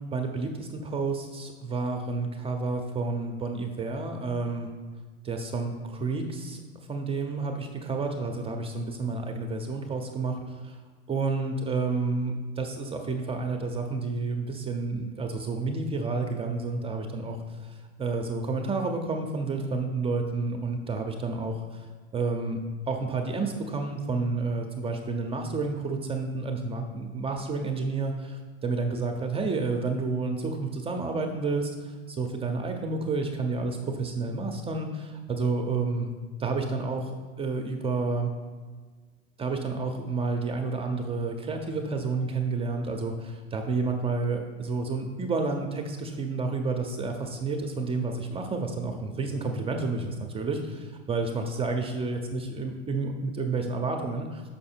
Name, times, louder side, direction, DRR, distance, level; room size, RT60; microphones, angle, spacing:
voice 1, 0.0-4.7 5.2-6.6 6.9-10.8 11.1-21.9 22.1-22.6 22.9-36.1 36.4-37.1 37.4-38.3 39.4-54.4, right 3 dB, 15° right, 3 dB, 0.6 m, -30 dB
6.4 x 5.7 x 4.4 m, 1.5 s
hypercardioid pair, 105°, 38 cm